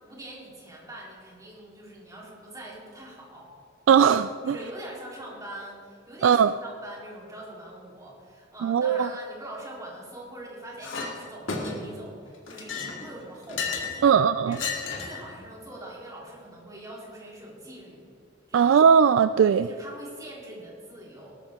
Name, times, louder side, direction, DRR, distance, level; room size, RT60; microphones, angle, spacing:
voice 1, 0.0-3.5 4.4-14.2 14.5-14.7 15.0-18.0 18.5-18.7 19.6-21.3, right 1 dB, 20° right, -4 dB, 3.6 m, -43 dB
voice 2, 3.9-4.6 6.2-6.5 8.6-9.1 14.0-14.6 18.5-19.7, right 7 dB, 80° right, 12 dB, 0.3 m, -19 dB
Chink clink, 10.8-11.1 11.5-12.0 12.5-14.0 14.5-15.2, left 5 dB, 85° left, 2.2 m, -32 dB
19.0 x 12.5 x 3.7 m, 2.4 s
head